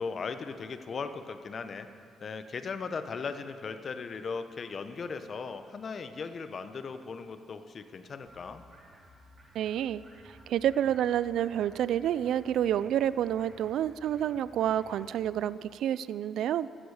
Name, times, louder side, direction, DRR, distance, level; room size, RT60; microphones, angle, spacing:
voice 1, 0.0-1.9 2.2-8.6, left 5 dB, 45° left, 9 dB, 0.9 m, -38 dB
sound 1, 8.3-15.4, equal, 30° right, 3.6 m, -56 dB
voice 2, 9.5-16.7, right 10 dB, 75° right, 17 dB, 0.3 m, -29 dB
15.5 x 13.0 x 4.9 m, 2.4 s
cardioid pair, 90°, 0 cm